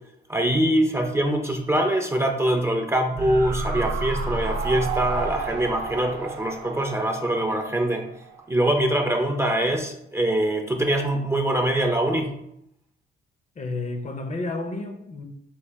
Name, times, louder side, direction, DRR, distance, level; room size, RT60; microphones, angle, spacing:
voice 1, 0.3-8.1 8.5-12.3, right 1 dB, 15° right, 0.5 m, -23 dB
sound 1, 3.2-8.4 8.7-8.8, right 4 dB, 85° right, 0.7 m, -31 dB
voice 2, 13.6-15.2, left 2 dB, 35° left, 0.6 m, -31 dB
4.8 x 2.4 x 3.3 m
cardioid pair, 90°, 20 cm